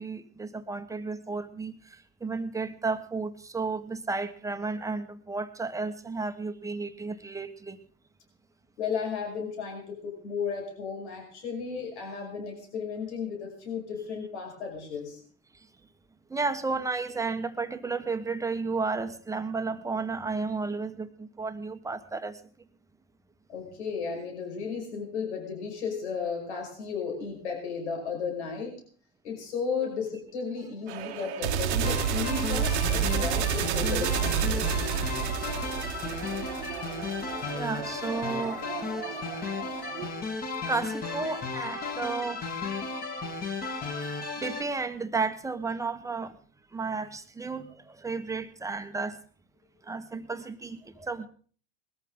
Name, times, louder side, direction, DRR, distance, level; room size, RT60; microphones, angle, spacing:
voice 1, 0.0-7.8 16.3-22.4 37.5-38.6 40.7-42.4 43.9-46.3 46.7-49.2 49.8-51.3, right 4 dB, 10° right, 8 dB, 1.4 m, -33 dB
voice 2, 8.8-15.2 23.5-28.7 29.2-34.8, left 5 dB, 80° left, 1 dB, 5.6 m, -34 dB
sound 1, 30.9-40.1, right 8 dB, 80° right, 1.7 m, -30 dB
sound 2, 31.8-44.6, left 4 dB, 25° left, 2.7 m, -34 dB
20.5 x 14.0 x 3.9 m, 0.44 s
hypercardioid pair, 105°, 33 cm